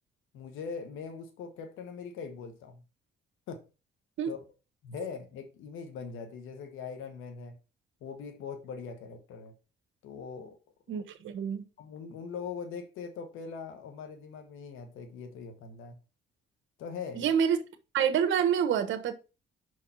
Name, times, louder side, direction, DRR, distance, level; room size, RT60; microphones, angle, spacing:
voice 1, 0.3-2.8 3.5-3.6 4.3-4.4 4.8-7.6 8.0-9.5 10.0-10.6 11.8-16.0 16.8-17.3, left 5 dB, 90° left, 1.2 m, -41 dB
voice 2, 10.9-11.6 17.1-17.6 17.9-19.1, right 8 dB, 75° right, 1.3 m, -27 dB
5.6 x 4.8 x 5.5 m
cardioid pair, 90°, 20 cm